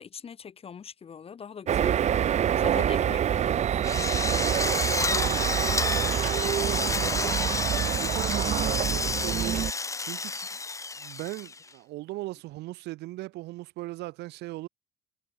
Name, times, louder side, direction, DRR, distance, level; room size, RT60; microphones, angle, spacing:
voice 1, 0.0-3.8, left 7 dB, 35° left, 1.4 m, -42 dB
sound 1, 1.7-9.7, right 9 dB, 40° right, 0.7 m, -26 dB
Drill, 3.8-11.7, left 3 dB, 20° left, 1.4 m, -30 dB
voice 2, 5.1-6.9 7.7-10.6 11.0-14.7, right 19 dB, 80° right, 1.0 m, -39 dB
cardioid pair, 110°, 17 cm